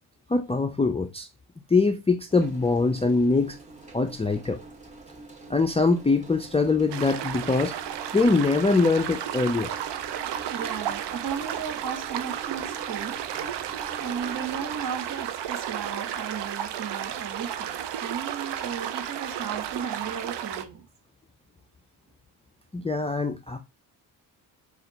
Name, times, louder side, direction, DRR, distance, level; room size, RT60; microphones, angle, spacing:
voice 1, 0.3-1.3 1.7-3.6 3.9-4.6 5.5-7.8 8.1-9.7 22.7-23.6, left 3 dB, 15° left, 0.4 m, -23 dB
sound 1, 2.3-14.8, right 3 dB, 15° right, 2.3 m, -46 dB
sound 2, 6.9-20.6, right 10 dB, 65° right, 0.6 m, -33 dB
voice 2, 10.5-13.5 14.0-20.8, right 7 dB, 45° right, 1.2 m, -35 dB
4.2 x 2.5 x 4.0 m
supercardioid pair, 50°, 45 cm